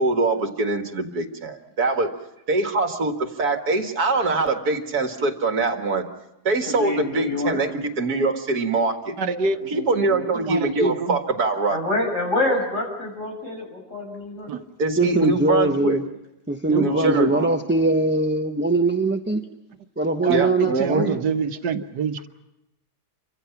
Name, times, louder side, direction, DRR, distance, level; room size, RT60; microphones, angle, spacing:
voice 1, 0.0-2.1 2.5-6.0 6.4-9.1 9.7-11.8 14.8-16.0 16.8-17.3 20.3-21.1, right 3 dB, 65° right, 5 dB, 2.2 m, -23 dB
voice 2, 6.7-7.6 9.7-10.3 11.7-14.5 16.9-17.5, left 2 dB, 45° left, 1 dB, 6.9 m, -27 dB
voice 3, 9.2-9.6 10.5-11.2 14.5-14.6 16.7-16.9 20.2-22.3, right 4 dB, 85° right, 7 dB, 1.8 m, -26 dB
voice 4, 15.0-16.0 16.5-19.4 20.0-21.2, right 2 dB, 10° right, 5 dB, 0.7 m, -21 dB
28.5 x 25.0 x 5.9 m, 0.91 s
omnidirectional pair, 1.8 m